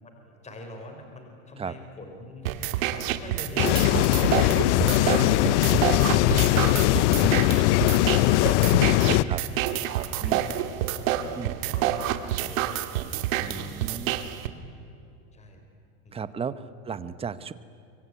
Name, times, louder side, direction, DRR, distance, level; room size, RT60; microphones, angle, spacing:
voice 1, 0.0-6.5 9.1-9.7 10.0-10.7 11.1-12.9 13.5-14.1 15.3-15.6 16.0-16.3, left 1 dB, 15° left, 4 dB, 4.3 m, -44 dB
sound 1, 2.4-14.5, right 12 dB, 70° right, 2.2 m, -28 dB
sound 2, 3.6-9.2, left 17 dB, 55° left, 0.7 m, -20 dB
voice 2, 4.9-5.5 9.3-9.4 10.2-10.5 11.3-11.6 13.4-14.2 16.1-17.5, right 6 dB, 15° right, 14 dB, 0.9 m, -35 dB
25.0 x 24.5 x 9.7 m, 2.6 s
supercardioid pair, 140°, 42 cm